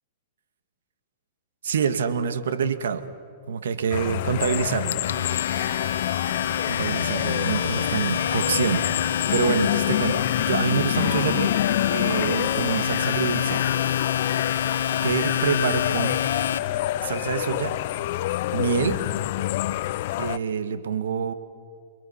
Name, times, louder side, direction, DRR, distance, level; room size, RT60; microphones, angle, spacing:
voice 1, 1.6-3.0 3.5-5.0 6.7-11.5 11.9-13.6 15.0-16.2 17.0-17.8 18.5-19.0 20.2-21.3, right 6 dB, 80° right, 10 dB, 1.7 m, -26 dB
sound 1, 3.9-20.4, left 14 dB, 50° left, 0.6 m, -27 dB
Domestic sounds home sounds, 4.7-16.6, left 8 dB, 85° left, 1.2 m, -27 dB
29.0 x 22.5 x 5.7 m, 2.3 s
hypercardioid pair, 145°, 0 cm